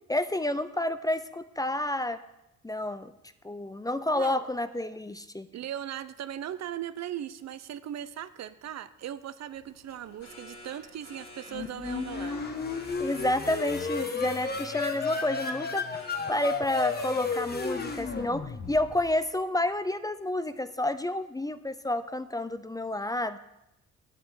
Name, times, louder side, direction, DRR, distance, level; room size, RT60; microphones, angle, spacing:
voice 1, 0.1-2.2 2.6-3.1 3.4-5.5 13.0-15.8 16.3-23.4, left 1 dB, 10° left, 12 dB, 0.6 m, -30 dB
voice 2, 4.1-4.4 5.5-12.4, right 11 dB, 60° right, 14 dB, 0.7 m, -38 dB
sound 1, 9.5-19.1, left 2 dB, 65° left, 2.8 m, -49 dB
sound 2, 11.5-19.1, left 4 dB, 30° left, 1.3 m, -33 dB
8.2 x 7.9 x 8.0 m, 0.88 s
cardioid pair, 90°, 30 cm